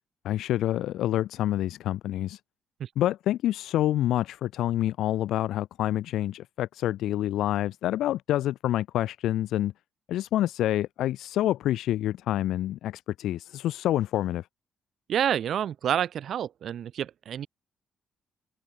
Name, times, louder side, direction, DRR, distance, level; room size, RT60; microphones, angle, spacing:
voice 1, 0.2-2.4 3.0-9.7 10.1-14.5, left 13 dB, 80° left, 4.3 m, -27 dB
voice 2, 15.1-17.5, right 9 dB, 65° right, 3.3 m, -28 dB
cardioid pair, 90°, 0 cm